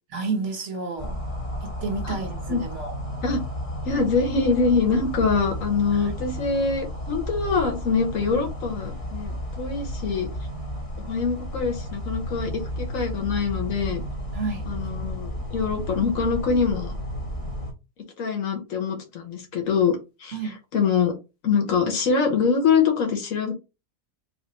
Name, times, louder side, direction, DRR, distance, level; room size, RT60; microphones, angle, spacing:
voice 1, 0.1-1.2 1.6-2.9 5.9-6.1 14.3-14.7 20.3-20.6, right 4 dB, 60° right, 1.3 m, -31 dB
sound 1, 1.0-17.7, equal, 30° left, 1.0 m, -33 dB
voice 2, 3.8-10.3 11.0-14.0 14.7-17.0 18.2-20.3 20.7-21.1 21.4-23.5, left 5 dB, 80° left, 1.3 m, -24 dB
3.3 x 2.4 x 4.1 m
omnidirectional pair, 1.4 m